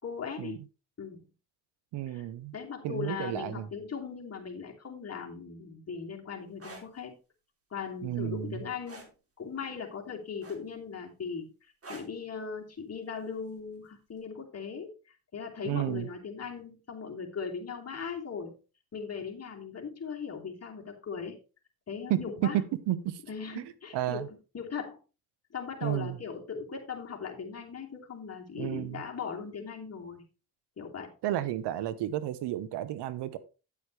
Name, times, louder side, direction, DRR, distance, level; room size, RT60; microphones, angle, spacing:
voice 1, 0.0-0.6 1.0-1.2 2.1-2.2 2.5-7.1 7.7-9.1 9.4-11.5 11.9-14.9 15.3-18.5 18.9-21.4 21.9-22.6 23.3-24.3 24.5-25.0 25.5-30.2 30.8-31.1, left 6 dB, 40° left, 2.8 m, -39 dB
voice 2, 1.9-2.5 2.8-3.7 8.0-8.6 15.6-16.1 22.1-23.2 23.5-23.6 23.9-24.3 25.8-26.2 28.5-29.0 31.2-33.4, right 13 dB, 85° right, 0.9 m, -32 dB
sound 1, 6.5-6.9 8.9-9.1 10.4-10.9 11.8-12.2 13.6-13.8, right 2 dB, 35° right, 3.1 m, -46 dB
9.3 x 8.4 x 3.2 m
cardioid pair, 85°, 40 cm